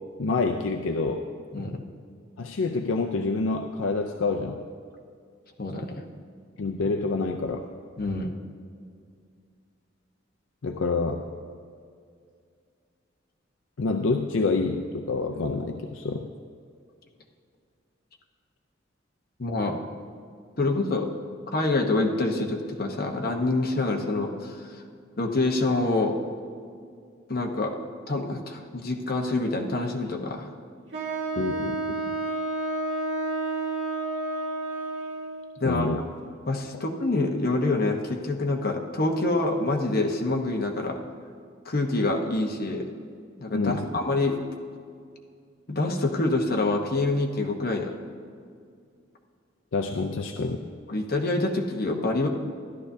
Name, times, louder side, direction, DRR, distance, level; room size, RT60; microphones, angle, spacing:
voice 1, 0.2-1.3 2.4-4.6 6.6-7.7 10.6-11.2 13.8-16.3 31.4-32.0 35.6-36.0 43.5-43.9 49.7-50.6, left 3 dB, 80° left, 4 dB, 0.5 m, -27 dB
voice 2, 5.6-5.9 8.0-8.3 19.4-19.9 20.6-21.1 21.5-24.6 25.1-26.2 27.3-27.7 28.1-30.5 35.6-36.0 36.5-41.0 41.6-42.9 43.4-44.4 45.7-47.9 50.9-52.3, left 2 dB, 50° left, 2 dB, 1.0 m, -26 dB
Wind instrument woodwind instrument, 30.9-35.4, right 2 dB, 70° right, 1.9 m, -30 dB
14.0 x 11.0 x 2.7 m, 2.2 s
head